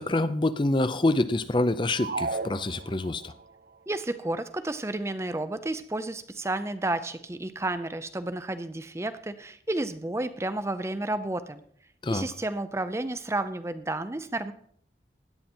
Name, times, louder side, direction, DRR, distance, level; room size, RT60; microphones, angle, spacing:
voice 1, 0.0-3.3 12.0-12.3, left 2 dB, 25° left, 13 dB, 0.6 m, -26 dB
sound 1, 2.0-3.4, right 3 dB, 55° right, 0.7 m, -34 dB
voice 2, 3.9-11.6 12.1-14.5, right 2 dB, 15° right, 11 dB, 0.5 m, -31 dB
16.5 x 10.5 x 4.4 m, 0.65 s
head